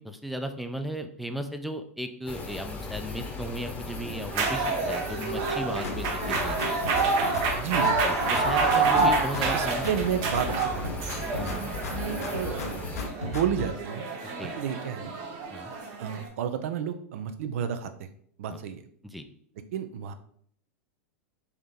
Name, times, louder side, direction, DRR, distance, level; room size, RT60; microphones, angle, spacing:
voice 1, 0.0-6.8 7.8-9.9 11.3-11.7 14.4-14.6 15.5-15.7 18.5-18.6 19.1-19.3, equal, ahead, 7 dB, 0.4 m, -36 dB
sound 1, 2.3-13.1, left 3 dB, 15° left, 0.9 m, -38 dB
sound 2, 4.3-16.3, right 3 dB, 50° right, 0.9 m, -28 dB
sound 3, 5.8-7.6 7.8-9.6 9.8-11.6 11.8-13.7, left 4 dB, 90° left, 0.6 m, -36 dB
voice 2, 7.5-8.2 8.9-9.1 9.5-12.9 13.2-14.0 14.6-15.1 16.0-18.1 18.4-18.8 19.7-20.1, right 8 dB, 65° right, 9 dB, 0.5 m, -32 dB
3.5 x 2.8 x 3.6 m, 0.63 s
hypercardioid pair, 105°, 8 cm